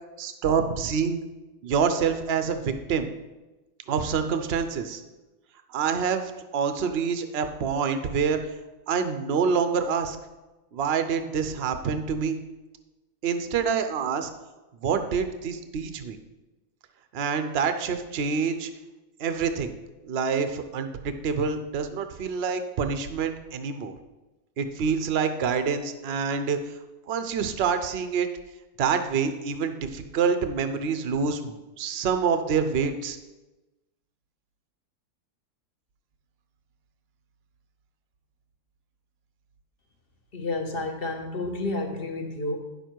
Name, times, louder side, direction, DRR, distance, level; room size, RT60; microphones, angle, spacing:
voice 1, 0.2-1.2 1.6-3.1 3.9-5.0 5.7-8.4 8.9-10.2 10.7-12.4 13.2-14.3 14.8-16.2 17.1-18.7 19.2-19.7 20.0-23.9 24.6-26.6 27.1-28.3 28.8-33.2, right 6 dB, 50° right, 8 dB, 0.8 m, -26 dB
voice 2, 40.3-42.6, left 2 dB, 40° left, 4 dB, 1.2 m, -30 dB
9.9 x 6.9 x 4.6 m, 1.1 s
omnidirectional pair, 1.6 m